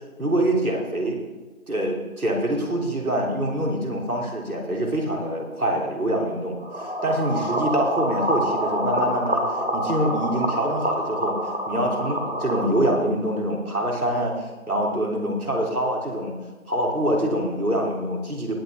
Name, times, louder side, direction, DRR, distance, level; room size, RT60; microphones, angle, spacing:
voice 1, 0.2-1.2 1.7-9.4 9.7-11.4 11.7-16.4 16.7-18.5, right 1 dB, 85° right, 0 dB, 3.3 m, -25 dB
sound 1, 6.6-12.6, right 1 dB, 45° right, 2.2 m, -27 dB
18.5 x 7.9 x 3.7 m, 1.3 s
figure-of-eight pair, 175°, 43 cm